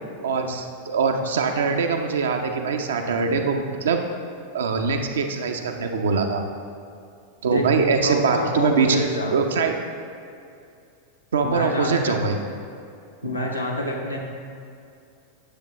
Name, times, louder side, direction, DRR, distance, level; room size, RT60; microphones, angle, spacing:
voice 1, 0.2-4.0 4.5-6.4 7.4-9.0 9.3-9.7 11.3-12.4, right 5 dB, 65° right, 4 dB, 0.7 m, -23 dB
voice 2, 8.0-9.3 11.4-12.1 13.2-14.2, left 1 dB, 85° left, -2 dB, 1.2 m, -27 dB
9.8 x 7.2 x 3.1 m, 2.5 s
figure-of-eight pair, 90°, 0 cm